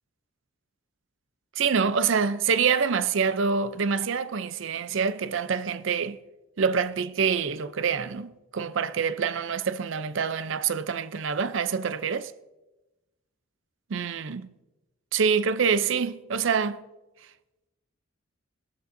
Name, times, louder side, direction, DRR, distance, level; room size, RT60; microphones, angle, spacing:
voice 1, 1.6-6.2 6.6-12.3 13.9-14.5 15.1-16.8, right 6 dB, 65° right, 0.5 m, -26 dB
17.5 x 13.0 x 2.6 m
head